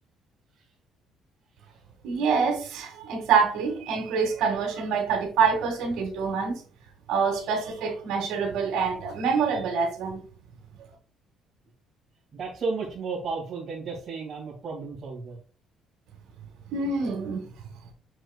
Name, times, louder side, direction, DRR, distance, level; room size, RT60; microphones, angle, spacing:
voice 1, 2.0-6.6 7.1-10.2 16.7-17.4, right 5 dB, 75° right, 1.8 m, -26 dB
voice 2, 12.3-15.4, right 4 dB, 45° right, 2.1 m, -33 dB
6.7 x 6.2 x 2.3 m
cardioid pair, 120°, 0 cm